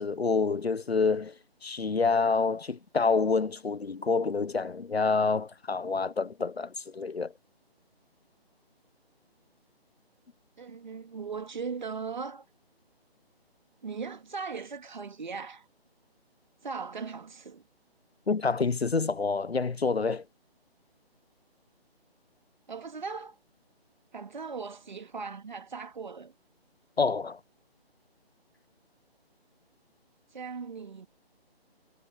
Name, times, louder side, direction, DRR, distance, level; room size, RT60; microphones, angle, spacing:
voice 1, 0.0-1.3 1.6-7.3 18.3-20.2 27.0-27.4, left 4 dB, 75° left, 0.9 m, -27 dB
voice 2, 10.6-12.5 13.8-15.6 16.6-17.6 22.7-23.4 24.1-26.3 30.3-31.1, right 5 dB, 45° right, 2.8 m, -38 dB
figure-of-eight pair, 150°, 31 cm